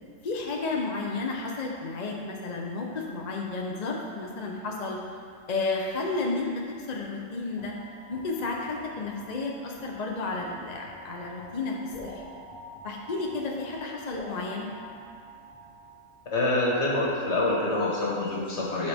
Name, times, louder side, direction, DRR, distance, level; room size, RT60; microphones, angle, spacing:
voice 1, 0.2-5.0 5.5-6.5 6.8-7.7 8.1-12.2 12.8-14.7, left 3 dB, 40° left, -1 dB, 0.6 m, -32 dB
sound 1, 7.6-16.3, equal, 85° left, 1.6 m, -46 dB
voice 2, 16.3-18.9, left 2 dB, 60° left, -4 dB, 1.7 m, -26 dB
12.0 x 4.1 x 3.5 m, 2.3 s
omnidirectional pair, 1.4 m